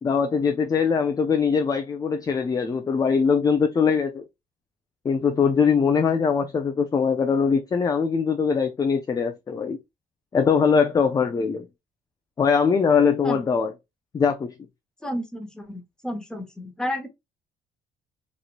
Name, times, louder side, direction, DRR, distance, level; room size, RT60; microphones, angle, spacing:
voice 1, 0.0-4.2 5.0-9.8 10.3-11.7 12.4-13.7 14.1-14.5, left 6 dB, 20° left, 0.4 m, -22 dB
voice 2, 15.0-17.1, equal, 5° left, 0.8 m, -31 dB
3.0 x 2.7 x 2.4 m
cardioid pair, 110°, 17 cm